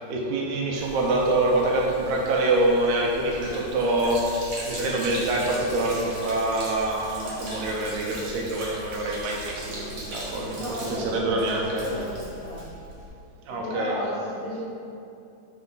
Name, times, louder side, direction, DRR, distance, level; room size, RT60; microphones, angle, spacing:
voice 1, 0.1-4.4 4.7-11.8 13.5-13.9, right 2 dB, 90° right, -2 dB, 2.2 m, -25 dB
Sink (filling or washing), 0.7-13.1, right 1 dB, 45° right, 1.5 m, -39 dB
voice 2, 10.5-12.6 13.5-14.6, left 1 dB, 70° left, -9 dB, 1.0 m, -34 dB
5.8 x 4.5 x 3.9 m, 2.6 s
omnidirectional pair, 3.3 m